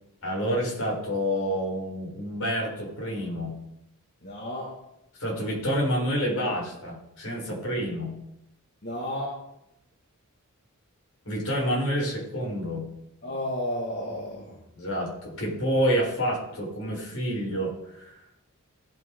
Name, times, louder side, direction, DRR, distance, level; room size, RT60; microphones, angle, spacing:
voice 1, 0.2-3.6 5.2-8.1 11.2-12.9 14.8-18.2, equal, 70° left, -2 dB, 4.7 m, -28 dB
voice 2, 4.2-4.7 8.8-9.3 13.2-14.5, left 1 dB, 45° left, -5 dB, 2.2 m, -32 dB
17.0 x 6.4 x 3.9 m, 0.83 s
head